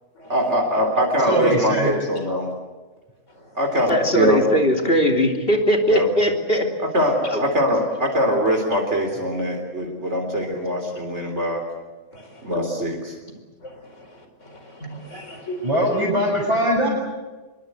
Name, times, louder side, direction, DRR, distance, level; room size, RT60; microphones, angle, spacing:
voice 1, 0.3-2.5 3.6-4.4 5.9-6.1 6.9-11.6 12.4-13.1, equal, 70° right, 2 dB, 3.9 m, -22 dB
voice 2, 1.3-1.9 15.6-16.9, equal, 25° right, -4 dB, 6.3 m, -20 dB
voice 3, 3.3-3.8 12.1-12.5 13.6-16.0, right 1 dB, 90° left, 6 dB, 4.9 m, -39 dB
voice 4, 3.9-6.7 7.3-7.4, equal, 50° left, 3 dB, 3.3 m, -20 dB
24.5 x 23.0 x 8.1 m, 1.3 s
omnidirectional pair, 1.2 m